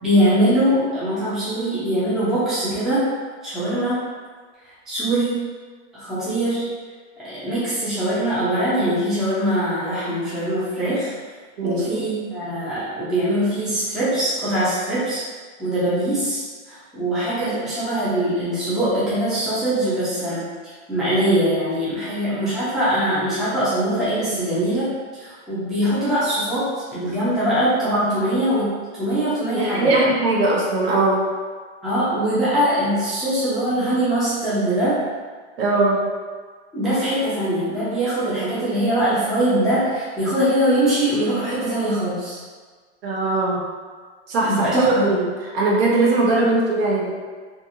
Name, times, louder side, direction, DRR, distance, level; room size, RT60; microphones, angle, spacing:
voice 1, 0.0-3.1 3.4-4.0 4.9-5.4 5.9-6.6 7.2-11.1 11.6-15.2 15.6-20.4 20.9-24.9 25.1-28.7 29.0-30.0 31.8-35.0 36.7-42.4 44.4-45.1, right 1 dB, ahead, -12 dB, 0.4 m, -22 dB
voice 2, 11.6-12.0 29.5-31.2 35.6-36.0 43.0-43.6 44.3-45.2 45.5-47.1, right 2 dB, 60° right, -3 dB, 0.8 m, -20 dB
2.5 x 2.5 x 2.7 m, 1.5 s
hypercardioid pair, 140°, 35 cm